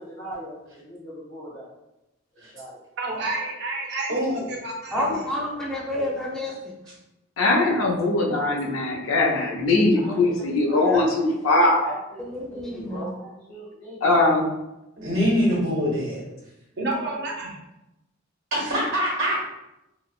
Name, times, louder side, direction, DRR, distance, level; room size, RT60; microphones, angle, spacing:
voice 1, 0.0-1.7 2.3-2.8 3.4-3.5 9.9-11.4 11.8-14.1 16.8-17.2, right 1 dB, 55° left, -10 dB, 1.1 m, -40 dB
voice 2, 3.0-4.1 4.5-5.2 16.8-17.6, right 2 dB, 55° right, -1 dB, 0.6 m, -30 dB
voice 3, 4.1-4.4 15.0-16.2 18.5-19.4, equal, 75° right, -6 dB, 1.2 m, -24 dB
voice 4, 4.9-6.7 10.9-11.0 12.2-13.1, left 1 dB, 5° left, -5 dB, 0.6 m, -29 dB
voice 5, 7.4-11.8 14.0-14.5, left 2 dB, 80° left, 0 dB, 0.6 m, -21 dB
3.8 x 2.0 x 2.3 m, 0.92 s
head